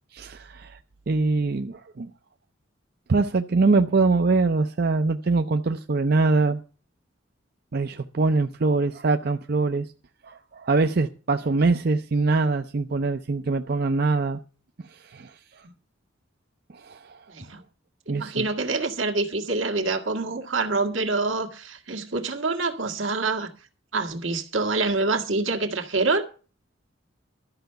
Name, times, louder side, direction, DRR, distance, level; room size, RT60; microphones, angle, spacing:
voice 1, 0.1-0.8 1.1-2.1 3.1-6.6 7.7-9.9 10.3-14.4 14.9-15.6 16.7-17.2 18.1-18.4, right 3 dB, 55° right, 0.6 m, -23 dB
voice 2, 17.3-17.6 18.1-23.5 23.9-26.2, right 3 dB, 80° right, 1.9 m, -26 dB
12.5 x 5.7 x 7.8 m
head